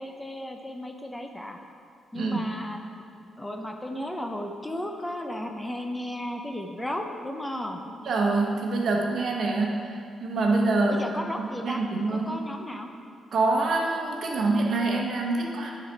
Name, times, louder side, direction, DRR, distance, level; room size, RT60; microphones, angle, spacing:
voice 1, 0.0-1.6 2.1-7.8 10.8-11.8 12.1-12.9, left 1 dB, 10° left, 3 dB, 0.5 m, -34 dB
voice 2, 2.1-2.5 8.0-12.4 13.3-15.7, right 3 dB, 60° right, 0 dB, 1.0 m, -26 dB
9.3 x 4.1 x 4.5 m, 2.3 s
cardioid pair, 100°, 0 cm